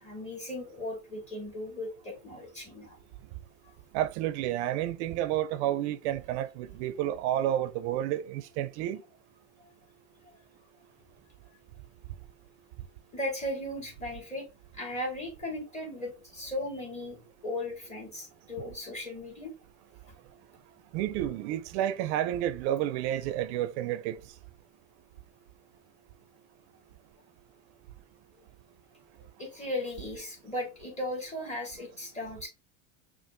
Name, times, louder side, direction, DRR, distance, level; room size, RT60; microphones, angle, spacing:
voice 1, 0.0-3.0 3.6-3.7 13.1-14.5 14.7-19.5 29.4-32.5, left 1 dB, 20° left, 1.8 m, -37 dB
voice 2, 3.9-9.0 20.9-24.2, right 12 dB, 70° right, 0.5 m, -30 dB
5.5 x 2.5 x 2.5 m
supercardioid pair, 125°, 36 cm